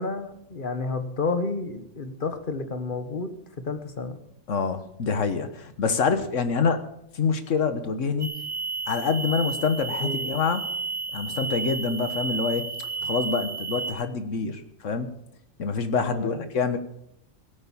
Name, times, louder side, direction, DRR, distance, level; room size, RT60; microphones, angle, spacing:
voice 1, 0.0-3.3 3.6-4.2 10.0-10.3 16.1-16.5, left 3 dB, 45° left, 9 dB, 1.5 m, -30 dB
voice 2, 4.5-6.9 7.1-8.3 8.9-10.7 11.1-12.7 13.0-15.1 15.6-16.8, left 5 dB, 85° left, 9 dB, 1.6 m, -26 dB
sound 1, 8.2-13.9, right 4 dB, 30° right, 1.8 m, -32 dB
17.0 x 8.9 x 7.3 m, 0.75 s
omnidirectional pair, 1.3 m